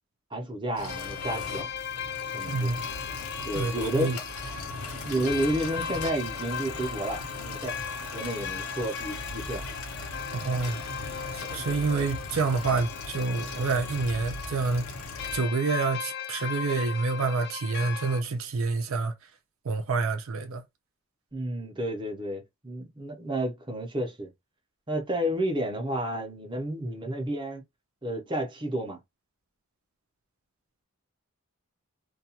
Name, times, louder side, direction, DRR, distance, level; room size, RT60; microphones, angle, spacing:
voice 1, 0.3-1.7 2.3-2.7 3.4-4.1 5.0-7.8 8.1-9.6 21.3-24.3 24.9-27.6 28.0-29.0, right 1 dB, 20° right, 0.6 m, -31 dB
sound 1, 0.7-15.4, left 2 dB, 85° left, 0.9 m, -39 dB
sound 2, 0.9-18.2, left 7 dB, 50° left, 0.3 m, -38 dB
voice 2, 2.5-2.8 3.5-4.2 10.3-10.8 11.3-14.8 15.3-19.1 19.6-20.6, right 4 dB, 70° right, 0.5 m, -28 dB
2.3 x 2.3 x 2.8 m
head